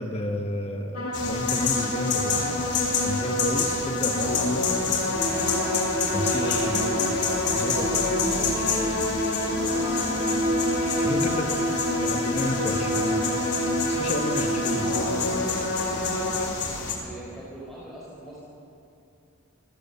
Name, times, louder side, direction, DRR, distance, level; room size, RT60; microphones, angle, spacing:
voice 1, 0.0-2.6 3.0-4.7 6.1-6.9 7.5-7.9 8.5-9.0 11.0-11.5 12.0-13.3 13.9-15.0, left 1 dB, 30° left, 4 dB, 1.2 m, -31 dB
sound 1, 0.9-16.5, left 1 dB, 75° left, 2.6 m, -29 dB
sound 2, 1.1-16.9, left 5 dB, 50° left, 3.5 m, -30 dB
sound 3, 5.1-15.3, equal, 90° right, 6.9 m, -30 dB
voice 2, 6.7-7.1 7.7-8.1 11.3-11.6 17.0-18.4, right 1 dB, ahead, -7 dB, 4.2 m, -41 dB
26.5 x 16.5 x 7.0 m, 2.7 s
head